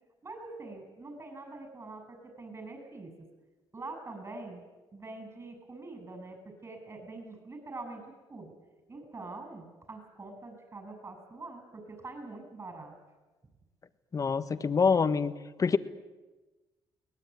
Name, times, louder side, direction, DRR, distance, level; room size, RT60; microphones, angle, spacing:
voice 1, 0.2-3.1 3.7-4.6 4.9-8.0 8.3-8.5 8.9-12.9, right 3 dB, 30° right, 6 dB, 7.7 m, -44 dB
voice 2, 14.1-15.3 15.6-15.8, left 5 dB, 35° left, 11 dB, 1.5 m, -25 dB
23.0 x 19.0 x 9.7 m, 1.2 s
cardioid pair, 90°, 9 cm